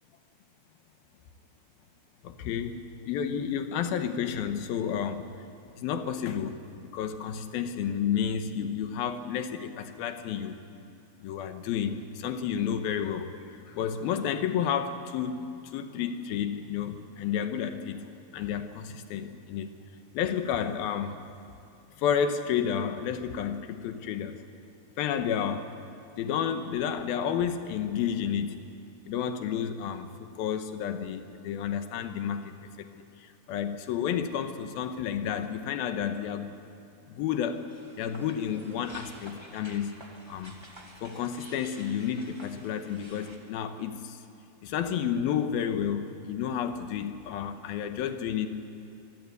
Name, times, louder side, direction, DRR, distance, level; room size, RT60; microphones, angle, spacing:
voice 1, 2.2-5.4 5.8-10.6 11.2-15.4 15.7-18.0 18.3-19.7 20.1-21.2 22.0-24.4 25.0-25.7 26.2-28.6 29.0-30.1 30.4-36.5 37.1-37.6 38.0-40.0 40.3-40.6 41.0-44.2 44.6-48.5, left 8 dB, 80° left, 8 dB, 2.9 m, -31 dB
sound 1, 37.5-43.4, right 1 dB, 15° right, 1.1 m, -50 dB
24.5 x 16.5 x 9.6 m, 2.6 s
omnidirectional pair, 4.4 m